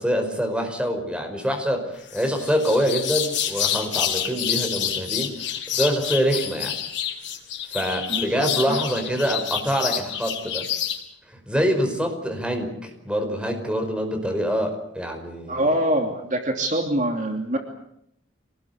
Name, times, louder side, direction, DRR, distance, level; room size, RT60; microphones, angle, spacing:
voice 1, 0.0-6.8 7.7-10.7 11.3-15.6, equal, 5° right, 4 dB, 5.3 m, -25 dB
sound 1, 2.1-11.0, left 9 dB, 75° left, 4.5 m, -28 dB
voice 2, 8.1-8.8 15.5-17.6, right 1 dB, 40° right, 3 dB, 3.0 m, -24 dB
26.5 x 20.0 x 8.3 m, 0.75 s
head